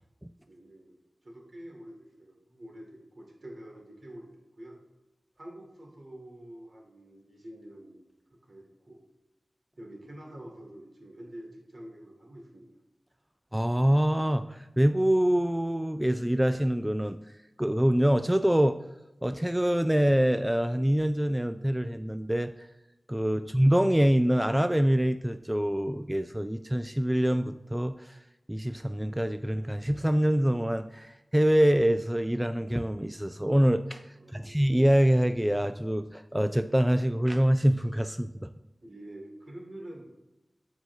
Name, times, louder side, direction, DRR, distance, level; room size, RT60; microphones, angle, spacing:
voice 1, 0.5-1.0 1.2-4.8 5.4-8.0 8.4-9.0 9.8-12.7 34.2-34.6 38.8-40.0, right 1 dB, 65° right, -1 dB, 2.2 m, -47 dB
voice 2, 13.5-18.8 19.2-22.7 23.1-28.2 28.5-38.5, equal, 10° right, 10 dB, 0.3 m, -25 dB
12.0 x 4.7 x 2.7 m, 1.0 s
wide cardioid pair, 50°, 0 cm